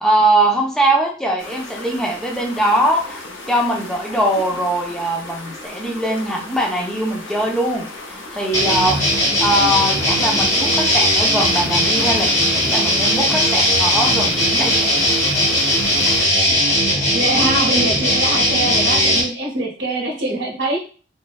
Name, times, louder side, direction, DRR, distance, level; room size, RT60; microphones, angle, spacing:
voice 1, 0.0-9.0 9.4-15.1, right 1 dB, ahead, -1 dB, 0.4 m, -21 dB
sound 1, 1.4-16.3, left 2 dB, 85° left, 0.6 m, -35 dB
sound 2, 8.5-19.2, equal, 35° left, 0.8 m, -18 dB
voice 2, 17.1-20.8, right 2 dB, 70° right, 0 dB, 0.7 m, -23 dB
2.5 x 2.2 x 2.3 m, 0.38 s
head